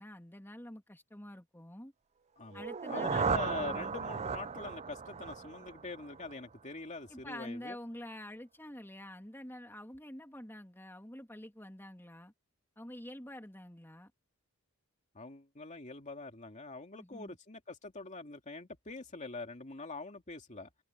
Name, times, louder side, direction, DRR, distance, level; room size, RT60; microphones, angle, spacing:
voice 1, 0.0-1.9 2.5-3.9 7.1-12.3 12.8-14.1 16.9-17.4, left 1 dB, 10° left, 2.9 m, -47 dB
voice 2, 2.4-7.8 15.1-20.7, left 3 dB, 35° left, 2.5 m, -44 dB
sound 1, 2.5-6.5, right 5 dB, 30° right, 0.5 m, -36 dB
head